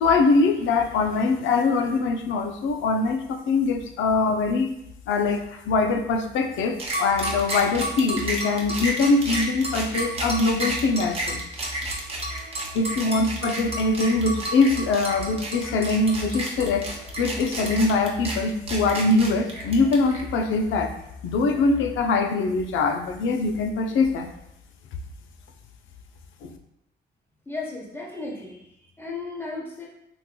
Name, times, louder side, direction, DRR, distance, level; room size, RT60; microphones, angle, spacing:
voice 1, 0.0-4.7 5.1-11.4 12.7-16.9 17.2-20.9 21.2-24.3 26.4-26.5, left 3 dB, 75° left, 5 dB, 0.5 m, -23 dB
sound 1, 6.8-20.2, right 1 dB, 30° right, 0.8 m, -31 dB
sound 2, 7.1-21.9, left 1 dB, 60° left, 1.0 m, -40 dB
voice 2, 27.5-29.9, left 3 dB, 10° left, -3 dB, 0.9 m, -35 dB
3.7 x 2.9 x 2.2 m, 0.80 s
cardioid pair, 90°, 20 cm